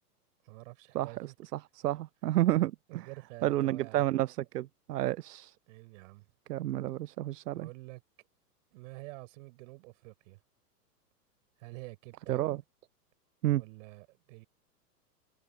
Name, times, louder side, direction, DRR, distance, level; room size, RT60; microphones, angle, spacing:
voice 1, 0.4-1.3 2.9-4.1 5.7-6.3 7.5-8.0 8.7-10.4 11.6-12.6 13.5-14.5, right 22 dB, 50° right, 6.6 m, -48 dB
voice 2, 1.8-2.7 3.4-5.5 6.5-7.7 12.3-12.6 13.4-13.6, right 14 dB, 80° right, 0.6 m, -29 dB
hypercardioid pair, 110°, 48 cm